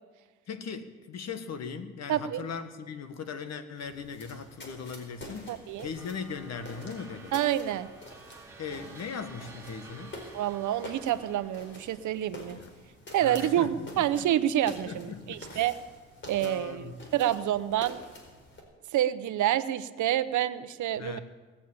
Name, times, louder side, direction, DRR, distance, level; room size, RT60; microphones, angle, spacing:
voice 1, 0.5-7.3 8.6-10.2 12.5-12.7 13.2-14.3 14.9-15.7 16.4-16.9 21.0-21.2, left 5 dB, 60° left, 9 dB, 1.4 m, -39 dB
voice 2, 2.1-2.5 5.5-5.9 7.3-7.9 10.3-12.6 13.1-15.8 16.3-18.0 18.9-21.2, right 12 dB, 75° right, 13 dB, 0.8 m, -28 dB
sound 1, 3.8-18.6, left 1 dB, 40° left, 4.6 m, -48 dB
sound 2, 6.0-12.2, right 3 dB, 10° right, 2.6 m, -51 dB
19.5 x 7.4 x 8.7 m, 1.3 s
cardioid pair, 90°, 30 cm